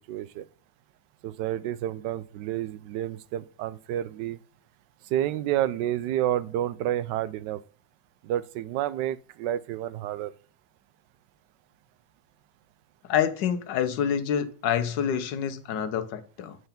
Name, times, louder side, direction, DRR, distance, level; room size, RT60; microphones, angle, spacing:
voice 1, 0.1-0.5 1.2-4.4 5.1-7.6 8.2-10.3, right 12 dB, 85° right, 1.2 m, -29 dB
voice 2, 13.1-16.6, left 8 dB, 85° left, 1.5 m, -27 dB
7.9 x 5.7 x 5.7 m
omnidirectional pair, 1.9 m